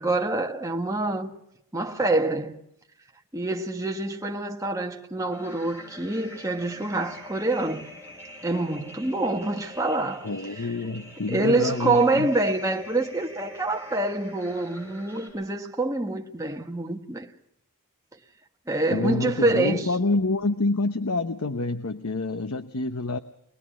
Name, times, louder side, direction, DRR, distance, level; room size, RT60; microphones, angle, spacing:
voice 1, 0.0-1.3 1.7-2.6 3.3-7.9 8.4-10.3 11.3-17.3 18.7-19.9, right 2 dB, 15° right, 1.5 m, -26 dB
sound 1, 5.3-15.3, equal, 10° left, 7.6 m, -44 dB
voice 2, 10.2-12.3 18.9-23.2, left 2 dB, 75° left, 0.9 m, -27 dB
24.0 x 19.5 x 6.2 m
head